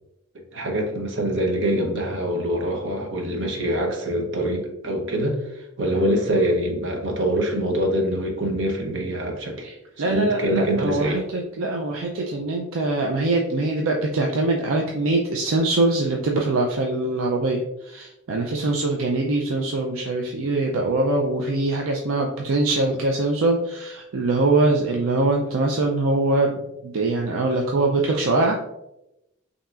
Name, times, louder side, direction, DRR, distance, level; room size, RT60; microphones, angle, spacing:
voice 1, 0.5-9.7 10.1-11.2, right 1 dB, 60° right, 2 dB, 0.8 m, -24 dB
voice 2, 9.6-28.6, right 2 dB, 80° right, 0 dB, 0.4 m, -23 dB
5.5 x 2.8 x 2.4 m, 0.89 s
head